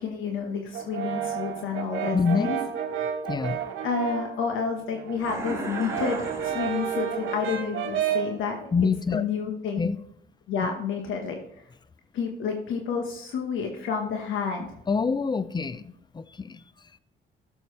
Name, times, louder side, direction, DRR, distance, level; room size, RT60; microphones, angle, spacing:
voice 1, 0.0-2.6 3.8-8.7 9.1-9.9 10.5-11.4 12.1-14.7, left 6 dB, 80° left, 3 dB, 1.2 m, -30 dB
Brass instrument, 0.7-4.4 4.8-8.4, right 8 dB, 75° right, 1.1 m, -31 dB
voice 2, 2.1-2.5 3.3-3.6 8.7-9.2 9.8-10.0 10.6-10.7 14.9-16.6, left 5 dB, 20° left, 16 dB, 0.5 m, -26 dB
sound 1, 5.2-7.5, right 2 dB, 15° right, 3.0 m, -37 dB
13.0 x 7.0 x 3.2 m, 0.73 s
cardioid pair, 90°, 20 cm